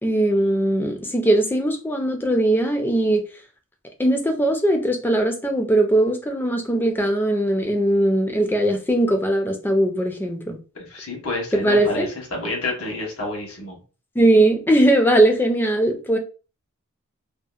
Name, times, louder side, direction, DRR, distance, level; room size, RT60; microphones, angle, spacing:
voice 1, 0.0-3.2 4.0-10.6 11.5-12.1 14.2-16.2, right 1 dB, 10° left, 0.3 m, -20 dB
voice 2, 10.7-13.8, left 2 dB, 75° left, 1.1 m, -29 dB
2.7 x 2.4 x 2.3 m
head